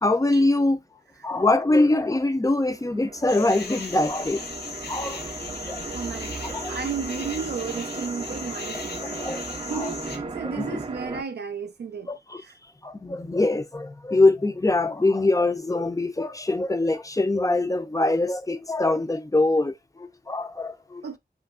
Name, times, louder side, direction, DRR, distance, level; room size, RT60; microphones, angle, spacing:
voice 1, 0.0-0.8 1.2-4.4 4.9-5.3 5.7-5.8 6.4-6.7 8.7-9.4 9.7-9.9 10.6-10.8 12.1-12.4 12.8-21.2, left 2 dB, 20° left, 0.4 m, -23 dB
sound 1, 2.7-11.2, right 3 dB, 35° right, 0.5 m, -36 dB
sound 2, 3.3-10.2, left 4 dB, 75° left, 0.6 m, -37 dB
voice 2, 5.9-12.1 12.4-12.5 21.0-21.2, right 6 dB, 85° right, 0.4 m, -34 dB
2.9 x 2.5 x 2.4 m
cardioid pair, 40°, 17 cm